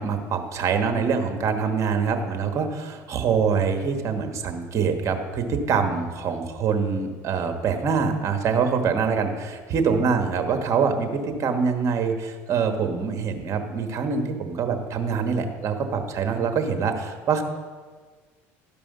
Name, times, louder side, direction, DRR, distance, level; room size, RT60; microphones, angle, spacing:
voice 1, 0.0-17.4, right 5 dB, 45° right, 6 dB, 1.3 m, -24 dB
12.5 x 5.4 x 5.4 m, 1.5 s
supercardioid pair, 95°, 7 cm